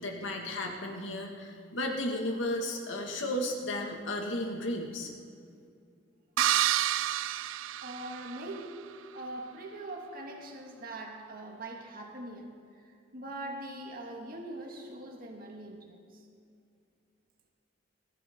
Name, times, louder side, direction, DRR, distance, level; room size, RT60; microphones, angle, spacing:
voice 1, 0.0-5.1, left 1 dB, 75° left, 2 dB, 2.2 m, -34 dB
sound 1, 6.4-8.6, right 12 dB, 85° right, 0.4 m, -29 dB
voice 2, 7.8-8.8 9.1-12.5 12.8-16.3, right 1 dB, 50° right, 1 dB, 2.2 m, -42 dB
21.5 x 15.0 x 3.9 m, 2.4 s
head